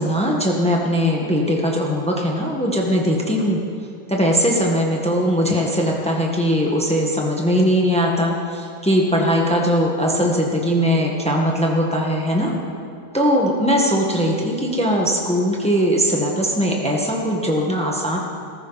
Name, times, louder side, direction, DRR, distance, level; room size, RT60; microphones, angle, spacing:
voice 1, 0.0-3.6 4.1-12.6 13.1-18.2, equal, 5° left, -1 dB, 1.5 m, -20 dB
20.5 x 14.0 x 4.1 m, 2.5 s
omnidirectional pair, 1.1 m